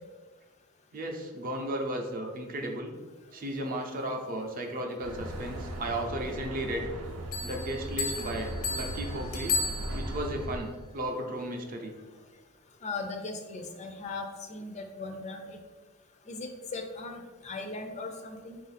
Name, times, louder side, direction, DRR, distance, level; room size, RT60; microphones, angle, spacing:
voice 1, 0.9-2.9 3.3-6.9 7.4-9.6 9.9-12.0, right 1 dB, 40° right, 3 dB, 0.5 m, -35 dB
sound 1, 5.0-10.6, right 1 dB, 85° right, 0.6 m, -38 dB
Bell, 7.3-10.4, left 4 dB, 90° left, 0.8 m, -34 dB
voice 2, 12.8-15.6 16.3-18.6, left 3 dB, 30° left, 5 dB, 0.4 m, -38 dB
4.5 x 2.5 x 4.0 m, 1.3 s
head